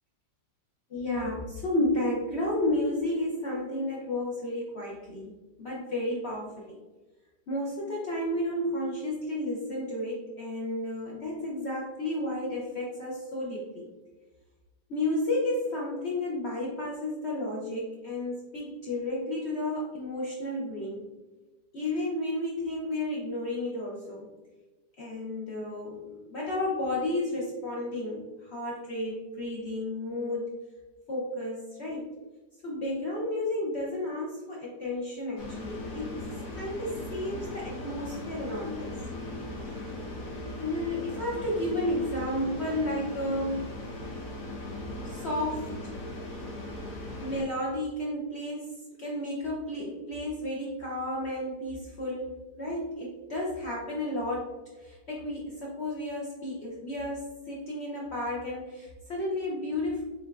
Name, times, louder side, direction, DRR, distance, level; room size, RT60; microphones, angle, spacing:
voice 1, 0.9-6.8 7.5-13.9 14.9-21.1 21.7-24.3 25.0-30.5 31.1-32.2 32.6-36.2 36.6-38.9 40.6-43.8 45.0-46.0 47.2-48.7 49.0-54.5 54.8-60.0, left 1 dB, 70° left, -4 dB, 0.6 m, -32 dB
sound 1, 35.4-47.4, left 1 dB, 55° left, 1.3 m, -38 dB
5.2 x 3.3 x 2.4 m, 1.2 s
omnidirectional pair, 2.0 m